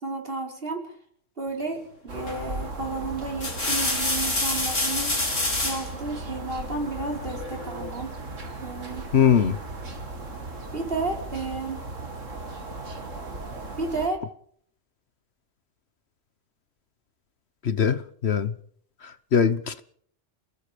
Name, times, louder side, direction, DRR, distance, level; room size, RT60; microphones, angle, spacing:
voice 1, 0.0-0.8 1.4-5.2 5.6-8.2 8.6-9.1 10.7-11.8 13.8-14.2, right 3 dB, 50° right, 5.1 m, -32 dB
sound 1, 2.1-14.1, right 2 dB, 90° right, 2.8 m, -37 dB
sound 2, 2.3-2.6 3.2-5.9 7.4-8.0, left 2 dB, 90° left, 4.9 m, -27 dB
voice 2, 9.1-9.6 17.6-18.5 19.0-19.8, left 7 dB, 60° left, 1.2 m, -22 dB
29.0 x 18.5 x 5.2 m
omnidirectional pair, 1.3 m